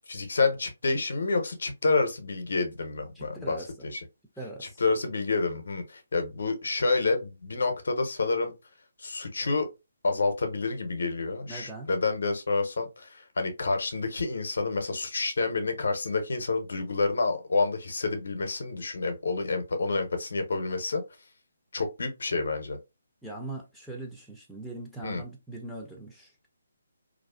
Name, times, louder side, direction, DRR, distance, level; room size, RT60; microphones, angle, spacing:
voice 1, 0.1-3.6 3.8-4.0 4.8-8.5 9.0-9.7 10.0-21.0 21.7-22.8 25.0-25.2, left 3 dB, 65° left, 0.6 m, -28 dB
voice 2, 3.1-3.9 4.4-4.8 11.5-11.9 23.2-26.5, right 2 dB, ahead, 0.5 m, -41 dB
2.4 x 2.3 x 2.2 m
figure-of-eight pair, 145°, 0 cm